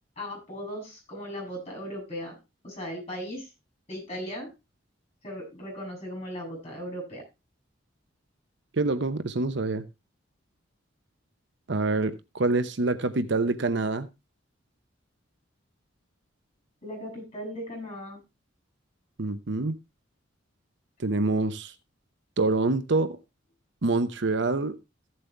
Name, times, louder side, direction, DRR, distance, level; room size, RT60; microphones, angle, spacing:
voice 1, 0.2-2.4 2.6-3.5 3.9-4.5 5.2-7.2 16.8-18.2, equal, 30° left, 7.7 m, -37 dB
voice 2, 8.7-9.8 11.7-14.1 19.2-19.7 21.0-21.7 22.4-23.2 23.8-24.8, right 3 dB, 65° right, 0.8 m, -26 dB
15.0 x 7.6 x 3.3 m
head